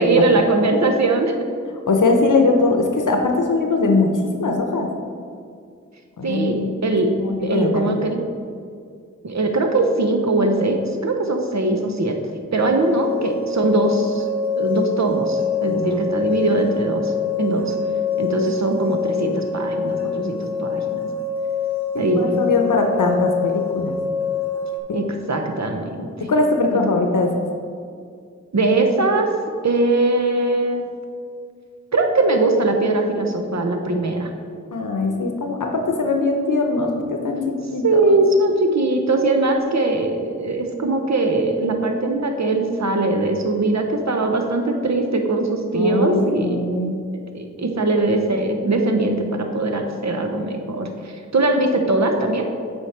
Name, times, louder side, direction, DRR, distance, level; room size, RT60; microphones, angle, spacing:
voice 1, 0.0-1.3 6.2-7.1 7.4-8.2 9.2-12.2 12.5-14.3 14.6-17.1 17.4-17.7 18.2-21.1 22.0-22.4 24.9-26.1 26.7-26.8 28.5-29.3 29.6-30.9 31.9-34.3 37.8-46.6 47.3-52.5, right 2 dB, 65° right, 4 dB, 0.9 m, -21 dB
voice 2, 1.9-4.9 6.2-6.7 7.2-8.0 15.7-16.0 21.9-23.9 26.2-27.3 34.7-38.0 45.7-46.9, left 3 dB, 85° left, 3 dB, 0.7 m, -21 dB
sound 1, 12.5-24.8, left 5 dB, 30° right, 1.1 m, -25 dB
8.3 x 4.8 x 4.3 m, 2.3 s
wide cardioid pair, 50°, 30 cm